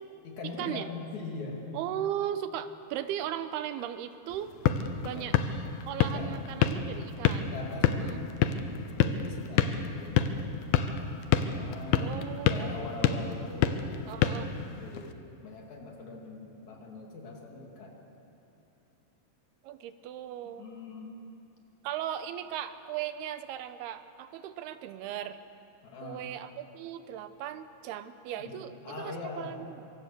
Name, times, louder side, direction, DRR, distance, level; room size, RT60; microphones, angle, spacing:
voice 1, 0.2-1.6 5.0-5.4 6.0-6.4 7.5-8.1 8.9-10.5 11.4-12.2 12.5-13.9 14.7-17.9 20.6-21.1 25.8-26.3 28.4-29.5, left 3 dB, 50° left, 0 dB, 3.6 m, -42 dB
voice 2, 1.7-4.5 5.0-5.4 5.9-7.5 8.0-8.9 12.0-12.7 14.1-14.5 19.6-20.7 21.8-25.4 26.0-28.7 29.0-29.9, right 11 dB, 85° right, 11 dB, 2.8 m, -37 dB
sound 1, 4.3-15.1, left 8 dB, 75° left, 2.7 m, -29 dB
25.0 x 23.5 x 6.7 m, 2.7 s
omnidirectional pair, 4.6 m